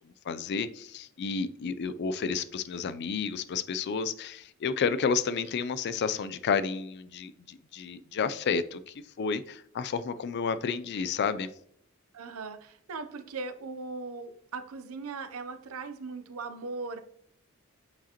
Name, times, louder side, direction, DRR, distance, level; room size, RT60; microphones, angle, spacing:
voice 1, 0.2-11.5, left 5 dB, 50° left, 0.4 m, -31 dB
voice 2, 12.1-17.0, right 4 dB, 80° right, 0.6 m, -39 dB
8.4 x 4.9 x 2.9 m
head